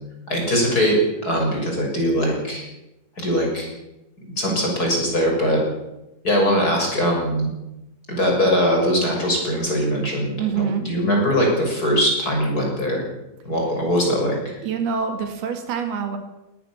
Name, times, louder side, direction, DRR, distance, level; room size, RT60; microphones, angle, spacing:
voice 1, 0.3-2.6 3.2-3.7 4.4-5.6 6.2-7.5 8.1-13.0 13.4-14.4, equal, 20° left, 0 dB, 6.6 m, -21 dB
voice 2, 10.4-10.9 14.6-16.2, right 6 dB, 75° right, 6 dB, 4.1 m, -25 dB
20.0 x 18.0 x 7.3 m, 0.95 s
omnidirectional pair, 4.5 m